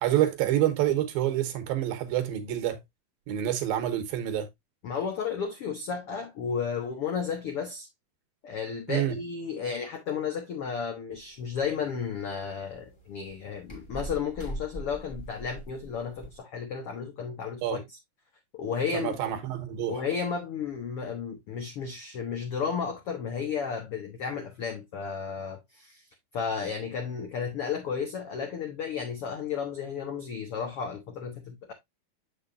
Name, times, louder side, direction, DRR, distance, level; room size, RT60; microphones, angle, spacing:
voice 1, 0.0-2.8 3.3-4.5 8.9-9.1 17.6-17.8 18.9-20.0, right 12 dB, 75° right, 2.8 m, -27 dB
voice 2, 4.8-7.9 8.4-17.8 18.5-19.2 19.9-26.0 26.3-31.7, left 6 dB, 75° left, 1.3 m, -33 dB
sound 1, 11.1-16.4, right 1 dB, 20° left, 1.2 m, -43 dB
7.3 x 6.8 x 2.6 m
omnidirectional pair, 4.3 m